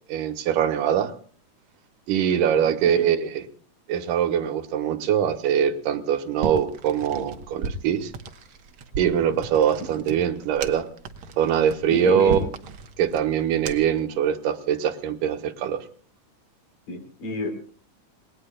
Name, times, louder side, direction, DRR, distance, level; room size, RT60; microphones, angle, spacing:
voice 1, 0.1-1.1 2.1-3.4 3.9-8.1 9.0-10.9 11.4-12.4 13.0-15.8, right 9 dB, 90° right, 9 dB, 2.7 m, -23 dB
voice 2, 2.6-3.0 11.9-12.5 16.9-17.5, left 3 dB, 80° left, 4 dB, 5.0 m, -29 dB
sound 1, 6.4-14.0, right 4 dB, 60° right, 1.4 m, -36 dB
29.0 x 19.5 x 2.3 m, 0.43 s
omnidirectional pair, 3.7 m